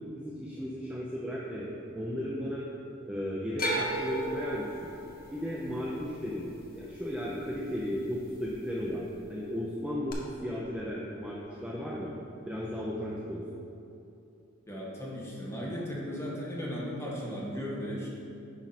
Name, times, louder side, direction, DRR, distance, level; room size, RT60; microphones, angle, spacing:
voice 1, 0.1-2.7 3.1-4.9 5.3-6.5 6.8-12.1 12.5-13.4, equal, 5° right, -5 dB, 0.5 m, -35 dB
sound 1, 3.6-7.8 8.1-8.8 10.1-10.2, right 1 dB, 45° left, 1.0 m, -36 dB
voice 2, 14.7-18.1, equal, 10° left, -6 dB, 1.4 m, -36 dB
9.9 x 4.7 x 4.2 m, 2.8 s
head